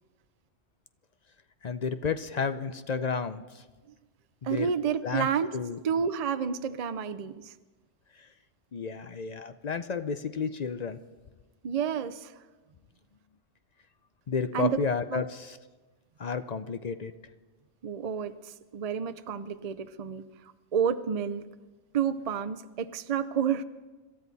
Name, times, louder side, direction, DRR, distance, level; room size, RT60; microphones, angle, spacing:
voice 1, 1.6-3.6 4.4-4.7 5.0-5.3 5.5-5.8 8.2-8.3 8.7-11.0 14.3-15.6 16.2-17.1, left 5 dB, 50° left, 10 dB, 0.5 m, -31 dB
voice 2, 4.4-5.6 5.8-7.5 8.9-9.0 11.6-12.4 14.5-14.8 15.1-15.2 17.8-21.5 21.9-23.6, right 7 dB, 55° right, 12 dB, 0.4 m, -30 dB
26.5 x 13.0 x 4.1 m, 1.2 s
omnidirectional pair, 1.3 m